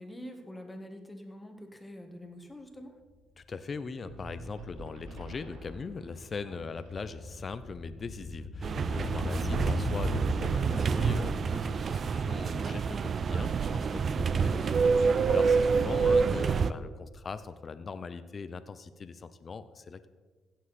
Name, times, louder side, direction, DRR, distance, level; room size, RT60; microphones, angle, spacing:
voice 1, 0.0-2.9 6.4-6.6 9.0-10.1, equal, 10° left, 4 dB, 1.6 m, -46 dB
sound 1, 3.1-3.2 3.5-13.8 14.1-14.2, left 1 dB, 75° left, 1.6 m, -39 dB
voice 2, 3.4-20.1, left 5 dB, 40° left, 12 dB, 0.6 m, -40 dB
sound 2, 4.1-7.6, right 1 dB, 85° right, 1.6 m, -48 dB
sound 3, 8.6-16.7, right 5 dB, 50° right, 0.4 m, -27 dB
16.5 x 7.5 x 4.2 m, 1.3 s
cardioid pair, 90°, 0 cm